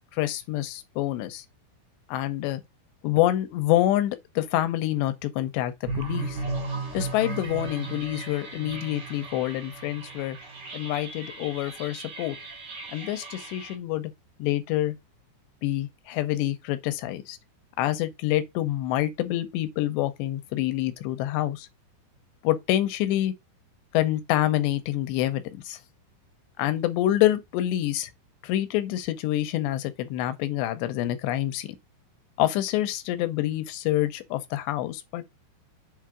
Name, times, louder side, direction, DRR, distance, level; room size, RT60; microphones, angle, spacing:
voice 1, 0.1-1.5 2.1-2.6 3.0-6.4 6.9-10.4 10.7-12.4 12.9-14.1 14.4-15.0 15.6-17.4 17.8-21.7 22.4-23.3 23.9-25.8 26.6-28.1 28.4-31.7 32.4-35.2, left 14 dB, 80° left, 2.8 m, -27 dB
sound 1, 5.8-13.7, right 3 dB, 75° right, 1.0 m, -36 dB
7.7 x 3.2 x 5.0 m
omnidirectional pair, 5.4 m